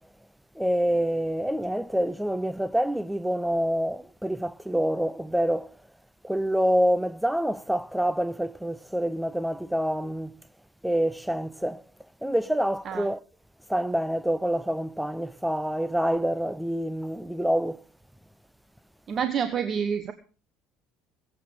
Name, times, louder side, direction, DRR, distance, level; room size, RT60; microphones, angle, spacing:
voice 1, 0.6-5.7 6.2-10.3 10.8-11.8 12.2-13.2 13.7-17.8, equal, ahead, 0.6 m, -26 dB
voice 2, 19.1-20.1, right 7 dB, 35° right, 1.2 m, -28 dB
22.0 x 8.7 x 4.8 m
cardioid pair, 130°, 0 cm